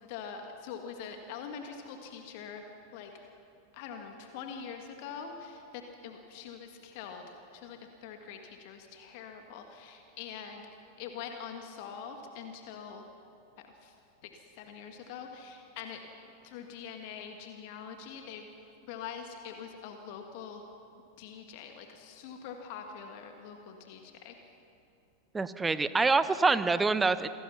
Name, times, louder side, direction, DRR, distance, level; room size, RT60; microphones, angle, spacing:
voice 1, 0.0-2.6 2.9-3.3 3.7-10.6 11.0-13.1 13.6-13.9 14.2-16.0 16.4-18.5 18.9-20.6 21.2-24.4, left 7 dB, 45° left, 5 dB, 1.8 m, -44 dB
voice 2, 25.3-27.3, right 4 dB, 10° right, 14 dB, 0.9 m, -26 dB
27.0 x 18.5 x 5.9 m, 2.6 s
figure-of-eight pair, 90°, 0 cm